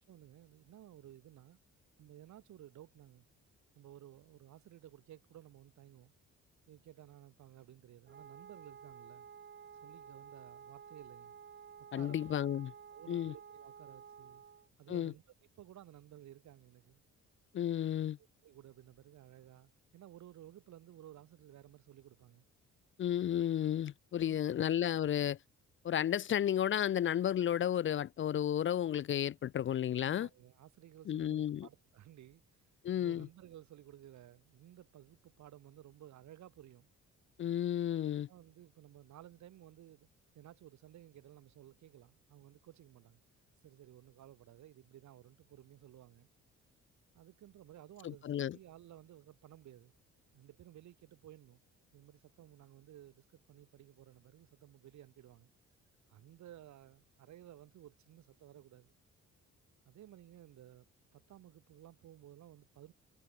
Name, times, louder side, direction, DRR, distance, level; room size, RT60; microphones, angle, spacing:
voice 1, 0.1-1.6 2.0-3.2 3.7-6.1 6.7-9.3 9.8-11.3 11.8-12.2 12.9-14.4 14.8-15.2 15.5-17.0 18.2-22.5 23.8-23.9 24.2-24.6 30.0-32.6 32.9-36.9 38.3-40.1 40.3-43.2 43.6-46.3 47.1-49.9 50.3-51.6 51.9-55.5 56.1-58.9 59.8-60.8 61.1-62.9, right 12 dB, 70° right, 1.4 m, -56 dB
Wind instrument woodwind instrument, 8.1-14.7, right 7 dB, 40° right, 1.2 m, -53 dB
voice 2, 11.9-12.7 13.1-13.3 14.9-15.1 17.5-18.2 23.0-25.4 25.8-30.3 31.1-31.7 32.8-33.3 37.4-38.3 48.0-48.6, left 10 dB, 40° left, 0.4 m, -33 dB
cardioid pair, 90°, 30 cm